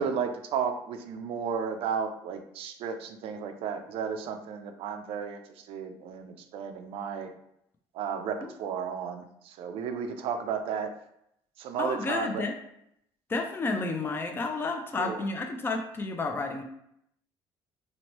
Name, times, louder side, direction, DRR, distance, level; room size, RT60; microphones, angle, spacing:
voice 1, 0.0-7.3 7.9-10.9 11.6-12.4 15.0-15.2, right 6 dB, 70° right, 7 dB, 0.4 m, -33 dB
voice 2, 11.8-12.5 13.3-16.6, left 3 dB, 20° left, 4 dB, 0.4 m, -31 dB
2.9 x 2.1 x 3.0 m, 0.75 s
cardioid pair, 95°, 10 cm